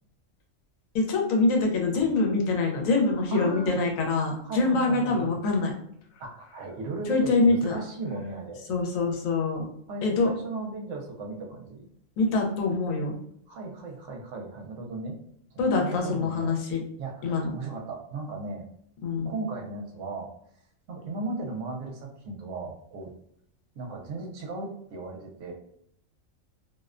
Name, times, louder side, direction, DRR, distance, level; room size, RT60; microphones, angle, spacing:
voice 1, 0.9-5.7 7.1-7.8 8.7-9.6 10.0-10.3 12.2-13.2 15.6-16.8 17.2-17.5 19.0-19.3, left 3 dB, 90° left, 1 dB, 1.0 m, -24 dB
voice 2, 3.3-3.8 4.4-5.4 6.2-8.6 9.9-11.8 13.5-15.2 15.5-16.5 17.0-18.7 19.2-20.3 20.9-23.1 23.8-25.5, right 3 dB, 75° right, 0 dB, 0.9 m, -36 dB
2.5 x 2.1 x 2.4 m, 0.69 s
omnidirectional pair, 1.4 m